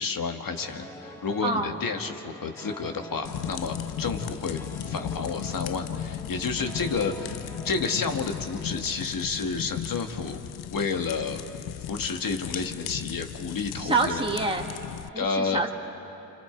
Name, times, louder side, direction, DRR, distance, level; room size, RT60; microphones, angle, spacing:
voice 1, 0.0-4.6 4.9-10.4 10.7-11.4 11.9-14.2 15.2-15.6, left 4 dB, 60° left, 5 dB, 1.8 m, -30 dB
sound 1, 0.6-9.9, equal, 5° left, 1.9 m, -45 dB
voice 2, 1.4-1.8 13.8-14.7 15.1-15.7, right 3 dB, 15° right, 0 dB, 2.0 m, -27 dB
sound 2, 3.3-15.1, left 10 dB, 75° left, 0.6 m, -36 dB
29.5 x 26.0 x 4.6 m, 2.9 s
supercardioid pair, 50°, 38 cm